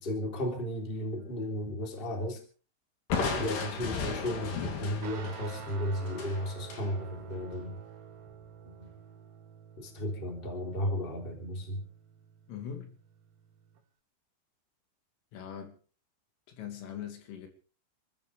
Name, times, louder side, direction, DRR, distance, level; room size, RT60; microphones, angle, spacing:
voice 1, 0.0-2.4 3.3-7.7 8.6-8.9 9.8-11.8, equal, 15° left, 2.8 m, -34 dB
Crushing, 3.1-6.9, left 5 dB, 60° left, 4.8 m, -35 dB
Guitar, 5.0-13.8, right 7 dB, 85° right, 5.2 m, -50 dB
voice 2, 12.5-12.9 15.3-15.8 16.5-17.5, left 8 dB, 75° left, 4.8 m, -41 dB
28.5 x 14.0 x 3.4 m
omnidirectional pair, 5.9 m